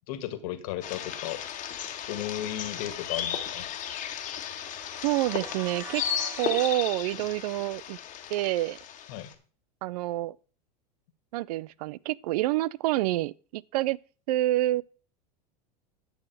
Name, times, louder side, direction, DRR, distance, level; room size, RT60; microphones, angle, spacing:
voice 1, 0.1-1.7 2.1-3.7 9.1-9.3, left 12 dB, 60° left, 1.7 m, -35 dB
sound 1, 0.8-9.3, left 9 dB, 35° left, 1.5 m, -35 dB
sound 2, 4.6-6.8, right 5 dB, 10° right, 0.7 m, -45 dB
voice 2, 5.0-6.0 6.4-8.0 8.3-8.8 9.8-10.4 11.3-14.0 14.3-14.8, right 16 dB, 70° right, 0.4 m, -27 dB
10.5 x 6.4 x 4.7 m
hypercardioid pair, 105°, 21 cm